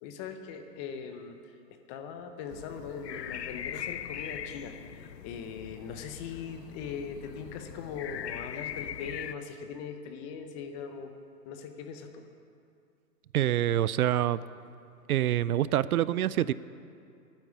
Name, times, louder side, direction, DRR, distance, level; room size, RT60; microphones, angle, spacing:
voice 1, 0.0-1.6 1.9-11.1 11.4-12.2, left 6 dB, 20° left, 6 dB, 0.7 m, -40 dB
sound 1, 2.5-9.4, left 10 dB, 85° left, 0.8 m, -41 dB
voice 2, 13.3-14.4 15.1-16.5, right 12 dB, 65° right, 18 dB, 0.5 m, -26 dB
12.5 x 9.2 x 8.1 m, 2.5 s
hypercardioid pair, 135°, 48 cm